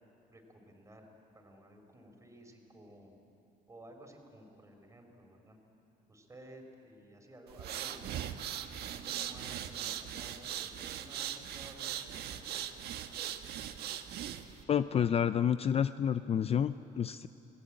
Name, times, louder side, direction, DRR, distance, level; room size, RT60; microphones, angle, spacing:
voice 1, 0.3-1.1 1.3-3.1 3.7-5.6 6.1-8.2 8.9-12.6, right 1 dB, 15° right, 3 dB, 4.3 m, -54 dB
sound 1, 7.5-14.6, right 10 dB, 75° right, 1.3 m, -40 dB
voice 2, 14.7-17.3, left 8 dB, 35° left, 13 dB, 0.5 m, -29 dB
27.0 x 19.0 x 8.9 m, 2.9 s
cardioid pair, 110°, 17 cm